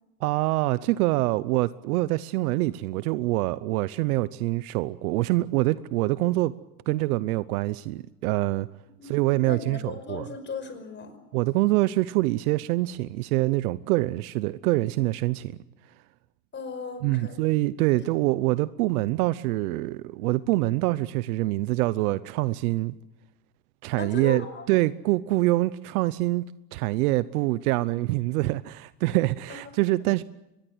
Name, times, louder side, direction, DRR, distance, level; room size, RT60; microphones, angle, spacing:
voice 1, 0.2-6.5 6.9-8.7 9.0-10.2 11.3-15.5 17.0-22.9 23.8-26.4 26.7-30.2, right 18 dB, 70° right, 0.8 m, -25 dB
voice 2, 9.0-11.2 16.5-17.4 17.9-18.0 24.0-24.7 29.5-29.6, left 5 dB, 25° left, 5.5 m, -37 dB
24.5 x 22.0 x 7.9 m
supercardioid pair, 120°, 46 cm